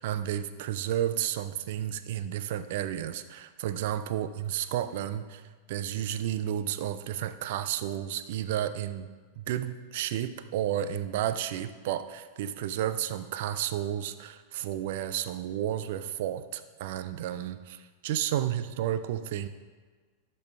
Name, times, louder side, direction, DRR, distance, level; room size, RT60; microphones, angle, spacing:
voice 1, 0.0-5.4 5.7-9.1 9.4-19.5, right 11 dB, 50° right, 12 dB, 0.4 m, -32 dB
12.0 x 5.4 x 3.2 m, 1.4 s
figure-of-eight pair, 90°, 0 cm